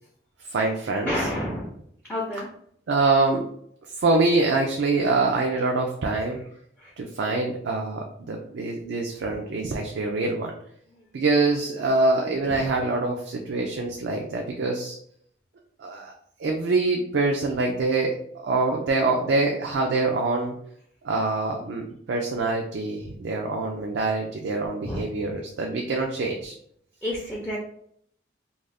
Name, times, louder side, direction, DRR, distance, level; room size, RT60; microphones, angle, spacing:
voice 1, 0.5-1.2 2.9-3.5 4.0-6.4 7.0-10.5 11.1-15.0 15.8-16.1 16.4-20.5 21.0-26.5, right 3 dB, 80° right, 1 dB, 0.4 m, -25 dB
voice 2, 1.1-1.7 2.1-2.5 6.2-6.5 6.8-6.9 9.2-9.3 10.9-11.0 12.5-12.8 24.8-25.4 27.0-27.6, left 1 dB, 10° left, -6 dB, 0.4 m, -31 dB
2.4 x 2.3 x 3.4 m, 0.66 s
head